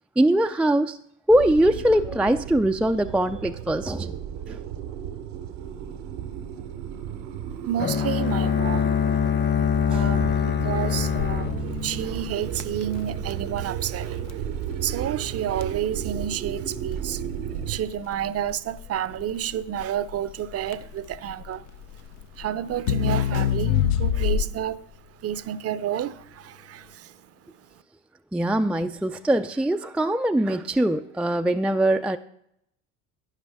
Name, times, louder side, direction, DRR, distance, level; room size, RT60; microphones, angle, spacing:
voice 1, 0.2-1.0 1.3-4.1 4.5-4.6 9.9-10.0 28.3-32.2, right 1 dB, 5° right, 0.3 m, -22 dB
sound 1, 1.3-17.8, right 9 dB, 80° right, 1.0 m, -34 dB
voice 2, 7.7-9.2 9.9-14.3 14.8-17.2 17.7-21.7 22.4-24.8 25.2-27.1, right 10 dB, 40° right, 0.6 m, -30 dB
Bowed string instrument, 7.8-12.7, left 8 dB, 30° left, 1.0 m, -24 dB
Crackle, 11.2-24.8, left 10 dB, 75° left, 0.7 m, -28 dB
11.5 x 9.6 x 3.5 m
supercardioid pair, 80°, 36 cm